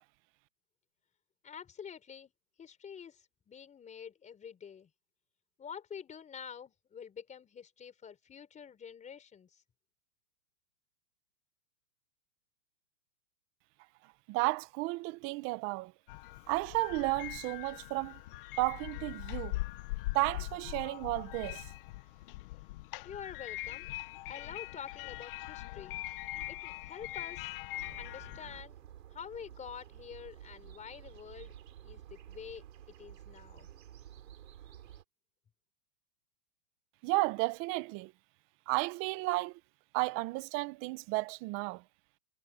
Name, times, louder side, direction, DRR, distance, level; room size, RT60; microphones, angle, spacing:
voice 1, 1.4-2.3 2.6-4.9 5.6-9.6 23.0-23.9 24.3-26.0 26.5-27.6 28.0-28.8 29.1-31.5 31.8-33.7, left 7 dB, 15° left, 4.1 m, -47 dB
voice 2, 14.0-15.9 16.5-18.2 18.6-19.6 20.1-21.7 37.0-38.1 38.7-39.6 39.9-41.8, right 22 dB, 25° right, 0.9 m, -33 dB
sound 1, 16.1-28.6, left 18 dB, 35° left, 0.6 m, -42 dB
sound 2, 27.7-35.0, right 10 dB, 80° right, 5.3 m, -52 dB
hypercardioid pair, 150°, 49 cm